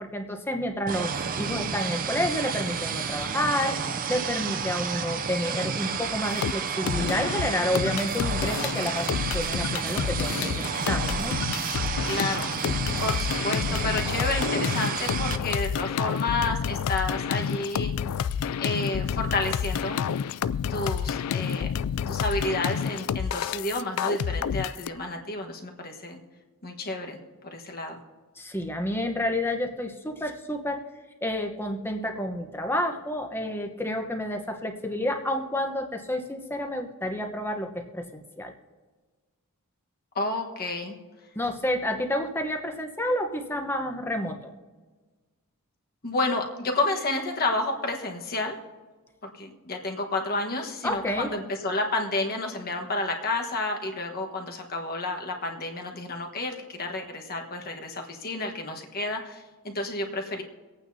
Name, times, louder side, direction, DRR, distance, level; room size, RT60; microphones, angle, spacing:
voice 1, 0.0-3.8 4.1-11.4 28.4-30.8 31.2-38.5 41.3-44.4 50.8-51.3, left 1 dB, 10° left, 5 dB, 1.0 m, -30 dB
sound 1, 0.9-15.4, right 6 dB, 40° right, 0.5 m, -31 dB
sound 2, 6.2-6.5 6.9-24.9, left 7 dB, 80° left, 0.3 m, -29 dB
voice 2, 12.1-12.5 13.0-17.9 18.6-20.0 20.7-21.7 22.1-26.2 26.6-27.2 27.5-28.0 40.1-41.0 46.0-48.6 49.4-60.4, left 2 dB, 45° left, 2 dB, 1.3 m, -30 dB
25.0 x 8.9 x 2.8 m, 1.3 s
head